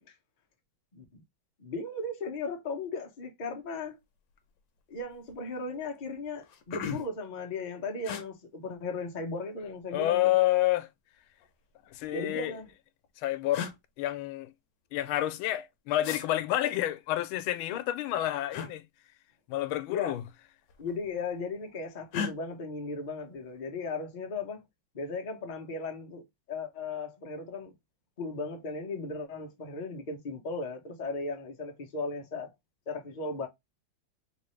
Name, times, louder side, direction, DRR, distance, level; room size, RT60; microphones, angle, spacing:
voice 1, 0.9-1.2 1.6-4.0 4.9-10.3 12.1-12.7 17.7-17.8 19.9-20.2 20.8-24.6 24.9-26.2 26.5-27.7 28.2-32.5 32.9-33.5, left 3 dB, 50° left, 0.5 m, -36 dB
sound 1, 4.3-4.6 4.9-5.4 5.9-6.0 6.3-7.3 8.0-8.2 9.5-10.1 11.3-12.1 13.0-13.1 13.5-13.8 16.0-16.2 18.5-18.7 20.1-20.3 20.6-21.2 22.1-22.3, left 7 dB, 70° left, 1.2 m, -37 dB
voice 2, 9.9-10.9 11.9-12.5 13.2-13.7 14.0-14.5 14.9-18.8 19.5-20.2, left 14 dB, 90° left, 1.4 m, -29 dB
3.7 x 2.6 x 3.1 m
omnidirectional pair, 2.2 m